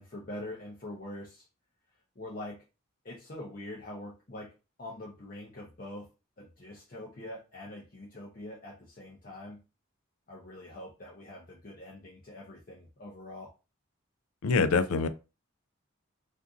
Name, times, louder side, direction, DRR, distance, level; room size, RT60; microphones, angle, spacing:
voice 1, 0.0-1.5 2.2-2.6 3.0-4.5 4.8-6.1 6.4-9.6 10.3-13.5, left 1 dB, 40° left, 0.6 m, -44 dB
voice 2, 14.4-15.1, left 4 dB, 85° left, 0.4 m, -25 dB
2.6 x 2.5 x 3.5 m
head